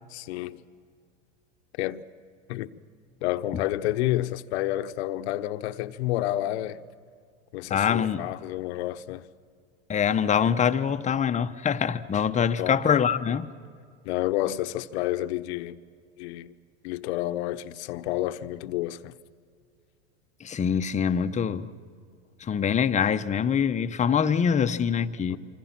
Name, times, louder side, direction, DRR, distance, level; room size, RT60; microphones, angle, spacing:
voice 1, 0.1-0.6 1.7-2.0 2.5-2.7 3.2-6.8 7.5-9.3 12.4-12.8 14.0-15.8 16.2-16.5 16.8-19.1 25.3-25.4, left 15 dB, 65° left, 1.0 m, -30 dB
voice 2, 7.7-8.3 9.9-13.5 20.4-21.7 22.4-25.4, left 7 dB, 20° left, 0.9 m, -24 dB
26.0 x 25.5 x 6.0 m
hypercardioid pair, 105°, 35 cm